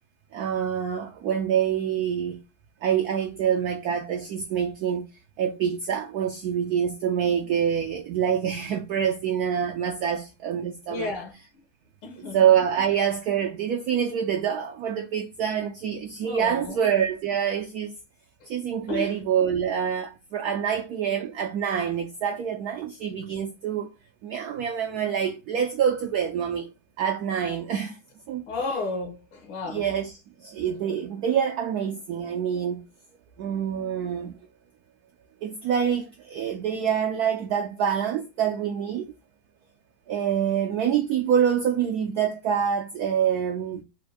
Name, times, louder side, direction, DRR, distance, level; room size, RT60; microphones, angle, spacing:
voice 1, 0.3-2.4 2.8-5.1 5.4-11.1 12.2-18.0 18.5-23.9 24.2-26.7 27.0-28.0 28.3-28.5 29.7-30.1 30.4-32.8 33.4-34.3 35.4-39.1 40.1-43.8, right 8 dB, 85° right, 0.8 m, -26 dB
voice 2, 10.9-11.3 12.0-12.4 16.2-16.8 18.4-18.5 18.9-19.2 28.5-29.8, left 3 dB, 75° left, 1.6 m, -32 dB
4.3 x 2.5 x 4.7 m
omnidirectional pair, 2.3 m